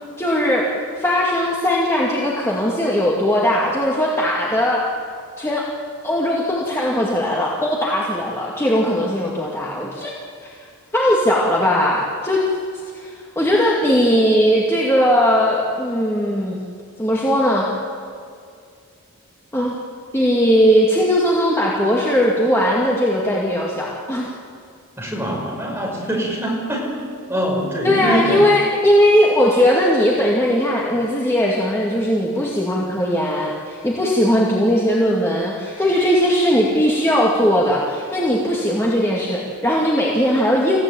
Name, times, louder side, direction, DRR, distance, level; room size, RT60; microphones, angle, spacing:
voice 1, 0.2-0.7 1.0-4.8 5.4-5.7 6.0-10.1 10.4-10.5 10.9-12.4 12.9-16.6 17.0-17.7 19.5-19.8 20.1-24.3 27.8-40.8, equal, 10° left, -4 dB, 2.3 m, -18 dB
voice 2, 25.0-28.4, right 1 dB, 10° right, -2 dB, 5.4 m, -24 dB
27.0 x 16.0 x 9.1 m, 2.2 s
head